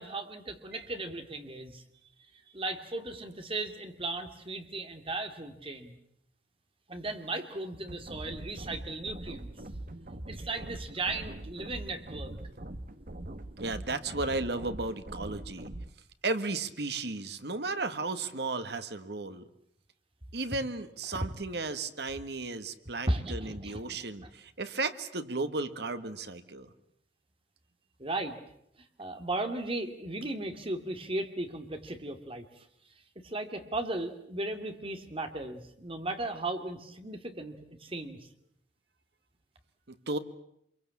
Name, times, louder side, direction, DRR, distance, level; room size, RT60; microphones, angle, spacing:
voice 1, 0.0-1.8 2.5-5.9 6.9-9.5 10.3-12.3 23.1-24.0 28.0-28.4 29.0-32.6 33.2-38.3, right 2 dB, 30° right, 6 dB, 2.6 m, -36 dB
sound 1, 7.9-15.9, right 1 dB, 50° right, 1.5 m, -42 dB
voice 2, 13.6-15.7 16.2-19.5 20.3-26.7 39.9-40.2, right 3 dB, 65° right, 10 dB, 1.8 m, -34 dB
26.5 x 23.0 x 8.5 m, 0.72 s
head